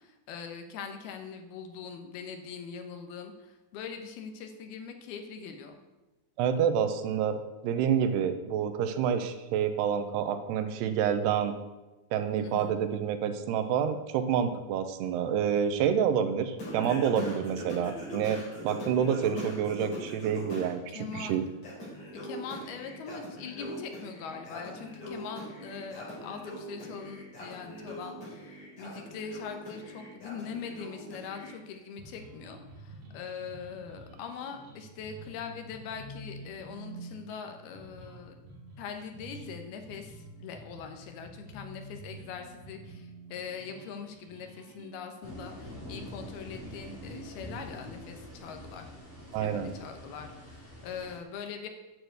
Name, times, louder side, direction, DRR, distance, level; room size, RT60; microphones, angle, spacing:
voice 1, 0.0-5.8 12.3-12.8 20.9-21.4 22.2-38.3 38.8-48.9 49.4-51.7, left 6 dB, 75° left, 6 dB, 2.9 m, -42 dB
voice 2, 6.4-11.5 12.1-21.4 49.3-49.7, right 8 dB, 80° right, 9 dB, 2.9 m, -28 dB
Singing, 16.6-20.7 21.1-31.5, equal, 35° left, 4.5 m, -41 dB
sound 1, 32.0-44.9, right 1 dB, 45° right, 2.4 m, -48 dB
sound 2, 45.2-51.2, equal, 15° left, 2.6 m, -45 dB
9.5 x 6.8 x 8.0 m, 1.1 s
omnidirectional pair, 4.8 m